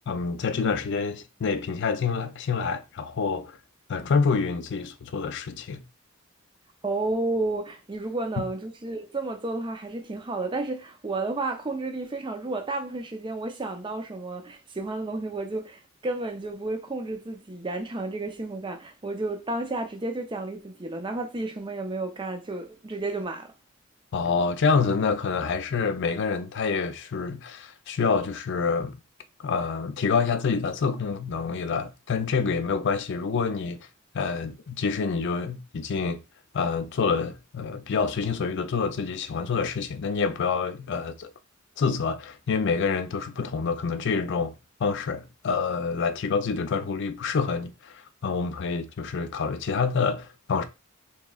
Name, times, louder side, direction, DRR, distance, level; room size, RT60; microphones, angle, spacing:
voice 1, 0.1-3.6 3.9-5.8 24.1-29.0 29.4-33.8 34.1-36.2 36.5-41.3 41.8-44.5 44.8-50.6, left 5 dB, 60° left, 0.4 m, -27 dB
voice 2, 6.8-23.5, right 2 dB, 25° right, 0.5 m, -32 dB
3.6 x 3.0 x 2.3 m
head